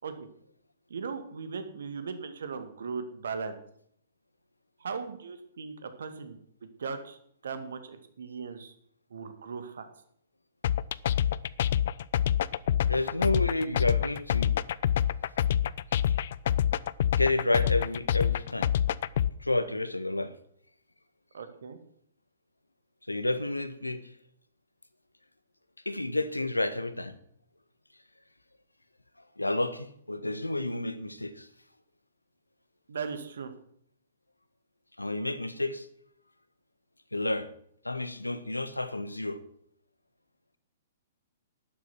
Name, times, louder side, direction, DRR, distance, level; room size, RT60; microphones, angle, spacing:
voice 1, 0.9-3.6 4.8-7.2 7.4-8.7 9.1-9.9 21.3-21.8 32.9-33.5, right 5 dB, 60° right, 9 dB, 2.1 m, -38 dB
sound 1, 10.6-19.3, left 10 dB, 50° left, 0.5 m, -26 dB
voice 2, 12.9-14.5 17.2-18.7 19.4-20.3 23.1-24.2 25.8-27.2 29.4-31.5 35.0-35.9 37.1-37.5 37.8-39.4, left 2 dB, 85° left, 12 dB, 1.3 m, -30 dB
12.5 x 11.0 x 6.1 m, 0.66 s
figure-of-eight pair, 115°, 0 cm